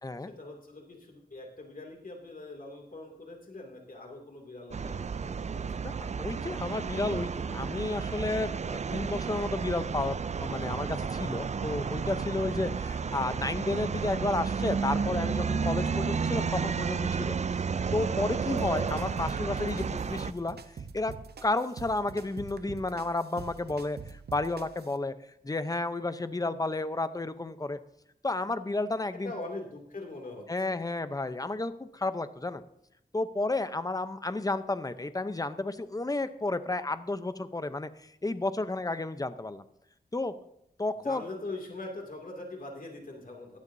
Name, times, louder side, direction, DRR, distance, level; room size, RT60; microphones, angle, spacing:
voice 1, 0.4-5.9 29.2-30.8 41.0-43.6, left 2 dB, 60° left, 1 dB, 2.6 m, -42 dB
sound 1, 4.7-20.3, right 5 dB, 45° right, 0.4 m, -32 dB
voice 2, 5.8-17.4 17.9-20.6 20.9-21.1 21.4-25.1 25.4-27.8 28.2-29.3 30.5-32.6 33.1-39.6 40.1-40.3 40.8-41.2, left 2 dB, 20° left, 12 dB, 0.7 m, -32 dB
sound 2, 18.6-24.9, right 5 dB, 85° right, 0.8 m, -45 dB
16.0 x 11.5 x 2.7 m, 0.75 s
wide cardioid pair, 80°, 16 cm